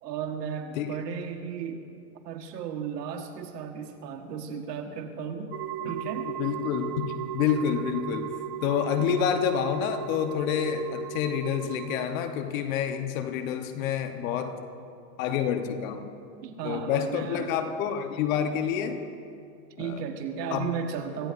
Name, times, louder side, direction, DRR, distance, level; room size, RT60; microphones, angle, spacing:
voice 1, 0.0-1.9 2.2-5.6 5.8-6.3 9.0-9.3 16.4-17.5 19.8-21.3, right 7 dB, 75° right, 4 dB, 1.6 m, -35 dB
sound 1, 5.5-12.1, right 10 dB, 40° right, 1.5 m, -36 dB
voice 2, 6.4-8.3 8.6-14.6 15.2-16.1 16.6-19.0 19.8-20.0 20.5-20.7, left 8 dB, 55° left, 7 dB, 1.1 m, -28 dB
25.5 x 16.0 x 2.6 m, 2.5 s
supercardioid pair, 140°, 49 cm